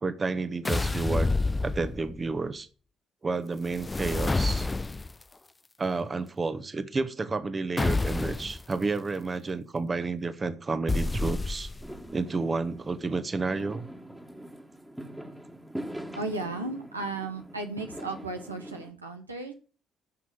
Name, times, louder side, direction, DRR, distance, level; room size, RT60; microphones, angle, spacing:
voice 1, 0.0-1.3 1.6-2.7 3.2-4.7 5.8-11.7 12.1-13.9, right 3 dB, 30° right, 11 dB, 1.2 m, -30 dB
sound 1, 0.6-2.3 3.7-5.2 7.8-8.6 10.9-12.0, left 3 dB, 20° left, 0.4 m, -28 dB
Fireworks, 11.8-18.9, right 1 dB, 5° right, 1.8 m, -43 dB
voice 2, 16.1-19.5, right 3 dB, 90° right, 3 dB, 1.1 m, -35 dB
9.9 x 6.1 x 7.4 m, 0.38 s
figure-of-eight pair, 45°, 0 cm